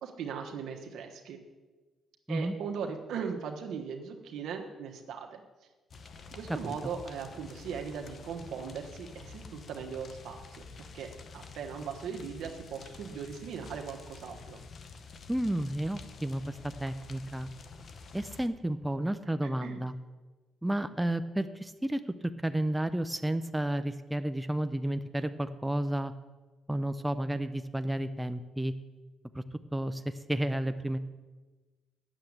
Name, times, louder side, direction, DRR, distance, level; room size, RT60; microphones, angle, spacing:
voice 1, 0.0-1.4 2.3-5.4 6.3-10.4 10.9-14.6 19.4-19.8, right 6 dB, 75° right, 3 dB, 1.2 m, -39 dB
sound 1, 5.9-18.5, left 4 dB, 50° left, 0.8 m, -49 dB
voice 2, 15.3-17.5 18.1-19.9 20.6-26.1 26.7-28.7 29.3-29.4 29.7-31.0, right 1 dB, 5° right, 9 dB, 0.5 m, -32 dB
9.0 x 7.1 x 7.9 m, 1.3 s
cardioid pair, 90°, 0 cm